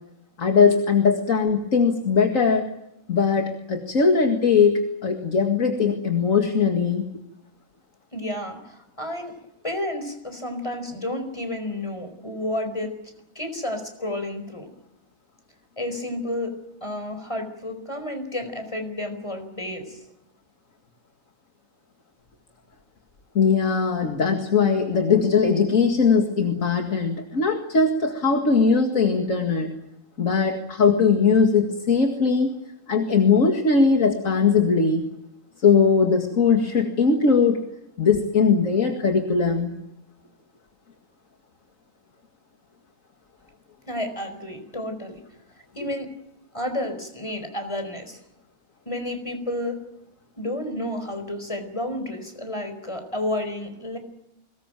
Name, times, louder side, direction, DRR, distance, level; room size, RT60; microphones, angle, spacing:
voice 1, 0.4-2.7 3.1-7.1 23.3-29.7 30.2-32.5 32.9-35.1 35.6-37.6 38.0-39.8, left 5 dB, 65° left, 3 dB, 2.4 m, -20 dB
voice 2, 8.1-9.4 9.6-12.9 13.3-14.7 15.8-20.0 43.9-45.2 45.7-46.1 46.5-48.2 48.8-49.8 50.4-54.0, left 1 dB, 20° left, 7 dB, 4.8 m, -31 dB
23.5 x 20.5 x 9.1 m, 0.80 s
omnidirectional pair, 1.5 m